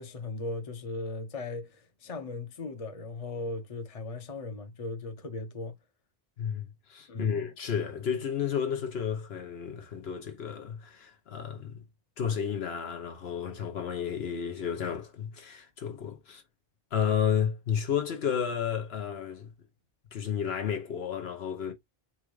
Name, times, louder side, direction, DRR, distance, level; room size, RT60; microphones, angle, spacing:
voice 1, 0.0-5.7 7.1-7.5, left 2 dB, 35° left, 0.9 m, -37 dB
voice 2, 6.4-11.8 12.2-16.4 16.9-19.5 20.1-21.7, left 8 dB, 75° left, 1.1 m, -32 dB
4.3 x 2.3 x 4.7 m
omnidirectional pair, 1.1 m